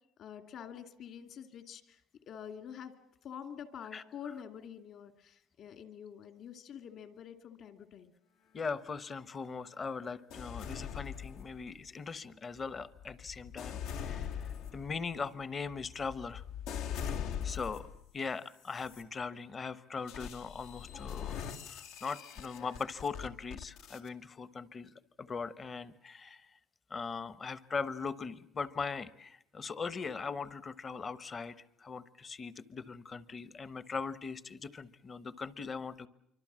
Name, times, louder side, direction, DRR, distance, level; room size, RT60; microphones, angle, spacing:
voice 1, 0.2-2.0 2.3-2.9 3.2-8.1, left 8 dB, 50° left, 8 dB, 2.3 m, -47 dB
voice 2, 8.5-16.4 17.4-17.9 18.1-21.4 21.7-24.9 25.2-26.5 26.9-31.5 31.8-36.1, left 5 dB, 25° left, 15 dB, 0.9 m, -40 dB
sound 1, 10.3-11.9 12.6-18.1 18.6-19.0 20.1-24.1, left 8 dB, 85° left, 2.1 m, -42 dB
27.0 x 24.5 x 7.5 m, 0.77 s
cardioid pair, 155°, 0 cm